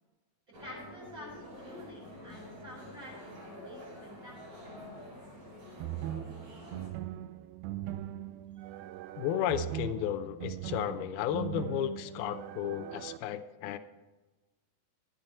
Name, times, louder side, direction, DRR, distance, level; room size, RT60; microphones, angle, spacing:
sound 1, 0.5-6.9, left 1 dB, 65° right, 5.0 m, -48 dB
voice 1, 0.6-4.4, equal, 25° right, -5 dB, 4.6 m, -49 dB
sound 2, 5.8-13.2, right 13 dB, 85° right, 2.1 m, -40 dB
voice 2, 9.2-13.8, left 10 dB, 80° left, 10 dB, 2.4 m, -33 dB
12.5 x 9.0 x 4.3 m, 1.2 s
omnidirectional pair, 4.6 m